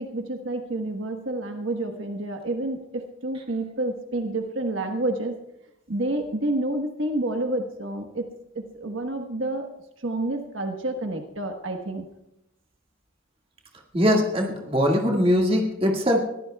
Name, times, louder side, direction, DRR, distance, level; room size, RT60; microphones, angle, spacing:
voice 1, 0.0-5.4 5.9-8.3 8.5-9.7 10.0-12.1, right 2 dB, 70° right, 4 dB, 1.3 m, -29 dB
voice 2, 13.9-16.2, equal, 25° right, 0 dB, 1.9 m, -21 dB
21.5 x 15.0 x 2.3 m, 0.86 s
head